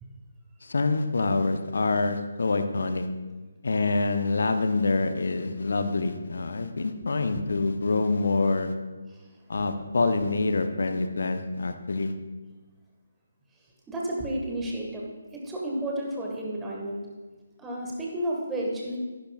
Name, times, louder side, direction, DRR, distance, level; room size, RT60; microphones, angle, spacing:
voice 1, 0.6-3.1 3.6-8.7 9.5-12.1, left 3 dB, 55° left, 8 dB, 0.8 m, -26 dB
voice 2, 13.9-15.0 15.3-17.0 17.6-19.0, right 1 dB, 10° right, -3 dB, 1.6 m, -31 dB
14.0 x 11.5 x 2.4 m, 1.3 s
figure-of-eight pair, 145°, 0 cm